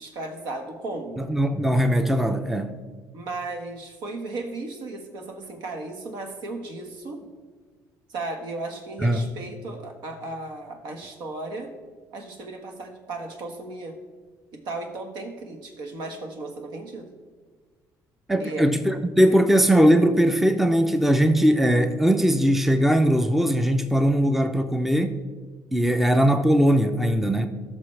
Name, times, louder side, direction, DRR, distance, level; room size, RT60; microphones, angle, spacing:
voice 1, 0.0-1.2 3.1-7.2 8.1-11.7 12.1-13.9 14.5-17.1 18.4-18.7, right 2 dB, 75° right, 4 dB, 1.5 m, -35 dB
voice 2, 1.2-2.7 9.0-9.3 18.3-25.2 25.7-27.5, equal, 5° right, 8 dB, 0.5 m, -20 dB
14.0 x 6.1 x 3.3 m, 1.5 s
cardioid pair, 110°, 8 cm